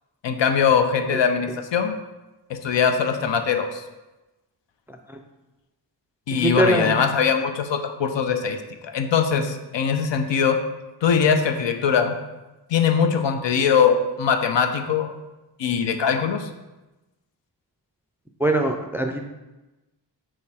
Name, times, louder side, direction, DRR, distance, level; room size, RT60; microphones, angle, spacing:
voice 1, 0.2-1.9 2.5-3.8 6.3-8.6 8.8-10.6 11.0-12.2 12.7-15.2 15.6-16.5, left 6 dB, 75° left, 6 dB, 0.7 m, -21 dB
voice 2, 6.3-7.0 18.4-19.2, right 1 dB, 5° right, 4 dB, 0.4 m, -22 dB
6.5 x 3.8 x 4.3 m, 1.1 s
wide cardioid pair, 130°, 44 cm